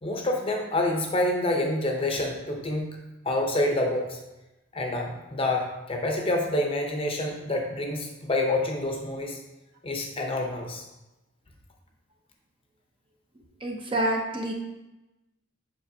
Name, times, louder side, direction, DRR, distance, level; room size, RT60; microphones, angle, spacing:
voice 1, 0.0-3.0 3.2-4.2 4.7-9.4 9.8-10.8 14.0-14.1, left 1 dB, 25° left, 2 dB, 0.7 m, -27 dB
voice 2, 13.6-14.5, right 1 dB, 25° right, 1 dB, 0.7 m, -27 dB
7.5 x 5.2 x 2.7 m, 1.0 s
head